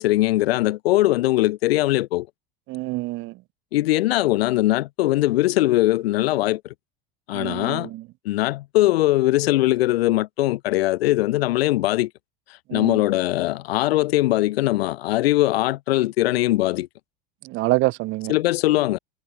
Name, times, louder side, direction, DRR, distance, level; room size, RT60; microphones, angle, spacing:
voice 1, 0.0-2.3 3.7-6.6 7.3-7.9 8.2-12.1 12.7-16.9 18.3-19.0, left 17 dB, 90° left, 1.2 m, -21 dB
voice 2, 2.7-3.3 7.3-8.0 12.7-13.0 17.4-18.3, right 20 dB, 40° right, 0.4 m, -26 dB
supercardioid pair, 110°, 29 cm